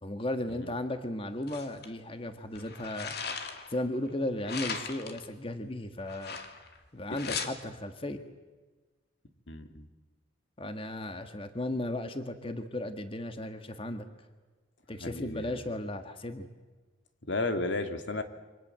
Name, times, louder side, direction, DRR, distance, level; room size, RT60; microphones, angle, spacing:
voice 1, 0.0-3.1 3.7-6.4 6.9-8.2 10.6-14.1 14.9-16.5, left 1 dB, 30° left, 8 dB, 1.7 m, -35 dB
sound 1, 1.5-1.9 2.6-3.8 4.5-5.2 6.1-6.8 7.1-7.5, left 5 dB, 60° left, 2.7 m, -38 dB
voice 2, 9.5-9.9 15.0-15.6 17.3-18.2, left 2 dB, 75° left, 8 dB, 2.3 m, -33 dB
28.5 x 25.5 x 7.7 m, 1.3 s
head